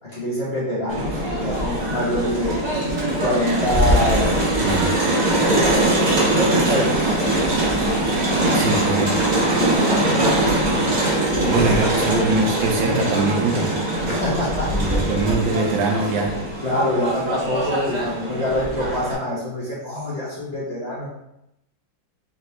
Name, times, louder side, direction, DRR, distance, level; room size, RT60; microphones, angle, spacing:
voice 1, 0.0-2.6 3.2-4.7 5.3-7.0 7.3-7.8 8.6-9.0 9.5-10.5 11.3-12.2 14.1-14.7 16.6-21.1, left 1 dB, 35° left, -8 dB, 1.3 m, -26 dB
Crowd, 0.9-19.1, right 1 dB, 30° right, 0.8 m, -22 dB
voice 2, 4.6-4.9 8.5-9.1 11.4-13.7 14.7-16.3, right 3 dB, 75° right, 1 dB, 1.4 m, -22 dB
4.1 x 3.4 x 3.0 m, 0.84 s
omnidirectional pair, 2.1 m